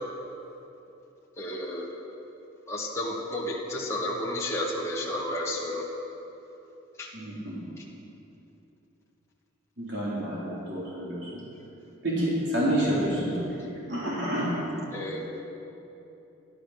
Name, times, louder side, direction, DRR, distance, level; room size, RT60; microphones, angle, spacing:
voice 1, 1.4-1.9 2.7-5.9 7.0-7.1 14.9-15.2, left 1 dB, 15° left, -4 dB, 1.6 m, -31 dB
voice 2, 7.1-7.6 9.8-11.5 12.0-13.4 13.9-14.7, equal, 60° right, -7 dB, 3.6 m, -29 dB
13.5 x 13.0 x 6.5 m, 3.0 s
head